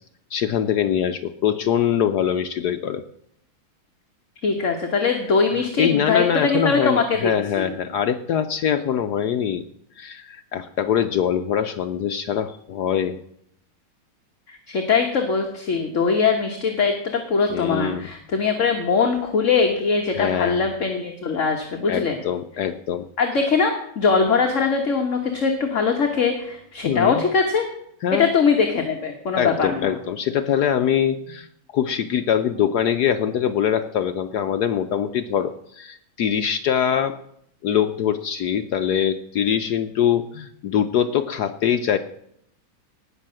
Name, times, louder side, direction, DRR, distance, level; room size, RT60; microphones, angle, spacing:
voice 1, 0.3-3.0 5.8-9.6 10.0-13.2 17.5-18.1 20.2-20.6 21.9-23.0 26.8-27.2 28.0-28.3 29.4-31.5 31.7-37.2 37.6-42.0, left 9 dB, 70° left, 9 dB, 1.0 m, -23 dB
voice 2, 4.4-7.7 14.5-22.2 23.2-27.6 28.1-29.9, left 5 dB, 40° left, 3 dB, 1.5 m, -21 dB
18.0 x 6.2 x 7.5 m, 0.74 s
omnidirectional pair, 2.3 m